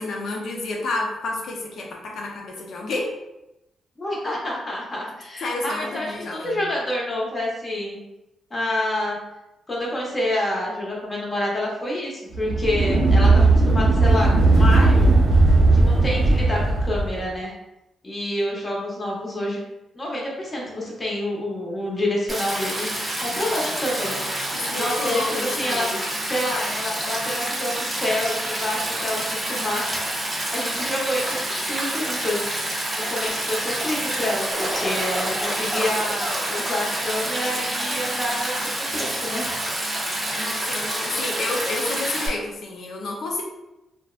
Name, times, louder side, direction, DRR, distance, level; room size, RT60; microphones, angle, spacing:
voice 1, 0.0-3.1 5.4-6.6 23.2-23.6 24.5-26.0 40.4-43.4, left 2 dB, 70° left, 0 dB, 0.5 m, -30 dB
voice 2, 4.0-8.0 8.5-9.2 9.7-15.1 15.7-17.5 18.0-19.6 19.9-22.9 23.2-24.4 24.7-25.9 26.3-30.0 30.5-32.5 32.9-39.5, left 1 dB, 30° left, -3 dB, 0.8 m, -28 dB
sound 1, 12.3-17.2, right 2 dB, 75° right, 0.6 m, -17 dB
Stream, 22.3-42.3, right 1 dB, 20° right, 0.7 m, -28 dB
sound 2, 34.5-37.5 37.8-38.5, equal, 5° left, 1.0 m, -33 dB
2.7 x 2.1 x 2.4 m, 0.94 s
cardioid pair, 95°, 0 cm